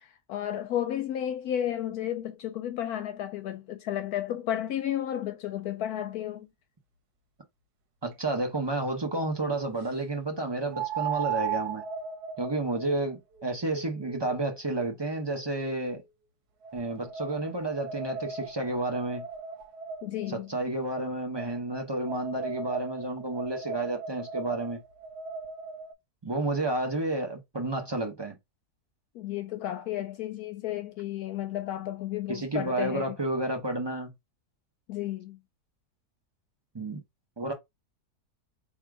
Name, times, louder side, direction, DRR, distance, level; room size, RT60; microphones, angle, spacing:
voice 1, 0.0-6.5 20.0-20.5 29.1-33.2 34.9-35.4, left 11 dB, 75° left, 1.0 m, -33 dB
voice 2, 8.0-11.8 12.4-16.0 16.7-19.2 20.3-24.8 26.2-28.3 32.3-34.1 36.7-37.0 37.4-37.5, right 2 dB, 30° right, 0.4 m, -31 dB
sound 1, 8.1-8.2 10.7-15.9 16.6-20.3 21.3-25.9, right 7 dB, 75° right, 1.3 m, -38 dB
3.6 x 2.7 x 4.7 m
omnidirectional pair, 1.7 m